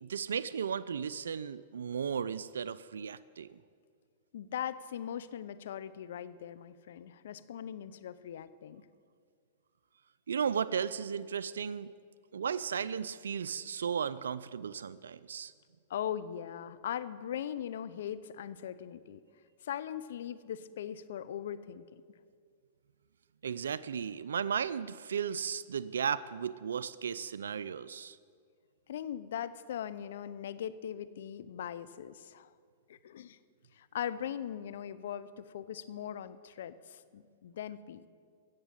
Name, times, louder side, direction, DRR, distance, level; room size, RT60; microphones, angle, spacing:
voice 1, 0.0-3.6 10.3-11.9 12.3-15.5 23.4-28.2, right 7 dB, 90° right, 16 dB, 0.4 m, -35 dB
voice 2, 4.3-8.8 15.9-19.2 19.6-22.0 28.9-32.5 32.9-33.4 33.7-38.1, left 9 dB, 70° left, 15 dB, 0.7 m, -40 dB
15.5 x 7.2 x 9.0 m, 2.1 s
hypercardioid pair, 130°, 0 cm